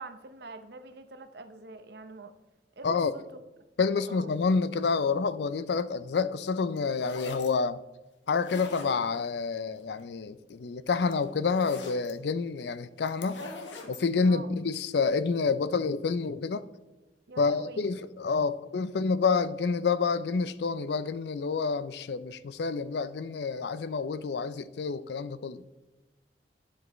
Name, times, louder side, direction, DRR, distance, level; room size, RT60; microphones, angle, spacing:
voice 1, 0.0-2.3 2.8-3.4 4.1-4.3 14.2-14.5 17.3-17.8, right 3 dB, 60° right, 0.7 m, -45 dB
voice 2, 3.8-7.8 8.3-13.4 13.9-16.7 17.4-25.6, left 4 dB, 65° left, 0.4 m, -28 dB
sound 1, 6.8-7.5 8.3-9.3 10.5-10.6 10.9-12.1 13.0-14.0, left 3 dB, 85° left, 1.1 m, -42 dB
9.6 x 7.8 x 3.0 m
head